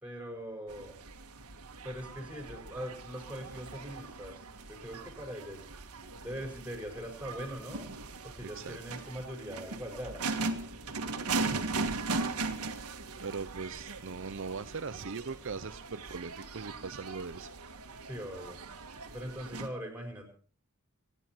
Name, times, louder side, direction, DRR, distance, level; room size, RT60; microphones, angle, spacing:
voice 1, 0.0-1.0 1.8-5.6 6.2-7.8 8.2-10.2 18.0-18.6 19.1-20.3, equal, 5° right, 3 dB, 5.1 m, -41 dB
sound 1, 0.7-19.7, right 3 dB, 90° right, 1.8 m, -39 dB
voice 2, 8.4-8.8 11.4-11.8 13.2-17.8, right 4 dB, 60° right, 10 dB, 0.7 m, -40 dB
27.0 x 10.0 x 4.5 m, 0.42 s
head